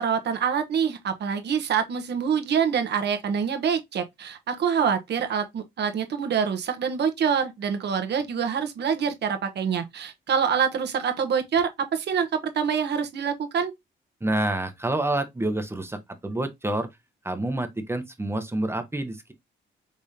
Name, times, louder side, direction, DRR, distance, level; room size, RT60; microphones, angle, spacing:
voice 1, 0.0-13.7, right 7 dB, 60° right, 1.1 m, -26 dB
voice 2, 14.2-16.9 17.2-19.3, right 1 dB, 10° right, 0.9 m, -28 dB
5.1 x 3.5 x 2.7 m
cardioid pair, 90°, 20 cm